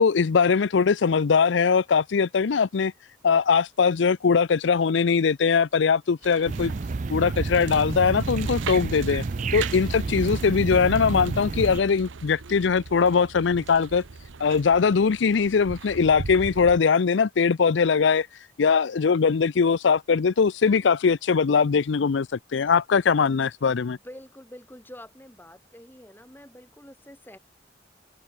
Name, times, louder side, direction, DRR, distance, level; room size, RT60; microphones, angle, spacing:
voice 1, 0.0-2.9 3.2-6.7 7.1-9.2 9.5-14.0 14.4-18.3 18.6-24.0, left 5 dB, 75° left, 0.5 m, -21 dB
sound 1, 6.2-16.8, right 5 dB, 85° right, 0.8 m, -40 dB
sound 2, 6.5-11.8, right 3 dB, 40° right, 0.4 m, -29 dB
voice 2, 23.8-27.4, left 1 dB, 10° left, 3.3 m, -46 dB
open air
head